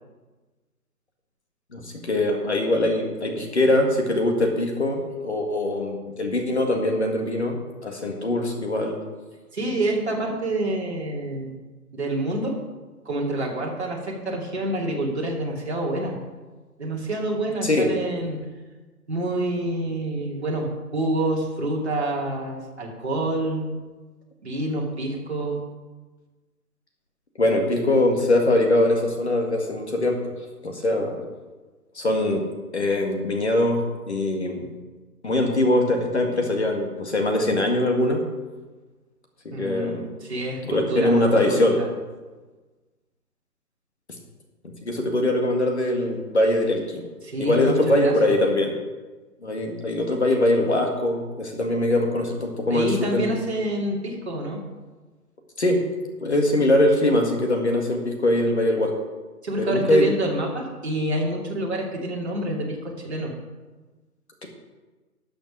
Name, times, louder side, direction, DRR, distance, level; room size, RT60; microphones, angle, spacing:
voice 1, 1.7-7.6 7.8-9.0 17.6-17.9 27.4-30.2 30.6-31.3 32.0-32.4 32.7-33.8 34.1-34.6 35.2-38.2 39.5-40.1 40.6-41.8 44.8-47.0 47.4-48.7 49.4-53.3 55.6-55.8 56.2-58.9 59.7-60.1, left 1 dB, 45° left, 2 dB, 1.8 m, -22 dB
voice 2, 9.5-11.6 11.9-12.6 13.0-16.1 16.8-18.4 19.1-23.7 24.4-25.6 39.5-41.9 47.2-48.4 52.7-54.6 59.4-62.8 63.0-63.3, right 1 dB, 40° right, -2 dB, 2.6 m, -27 dB
12.5 x 7.0 x 6.2 m, 1.3 s
hypercardioid pair, 180°, 47 cm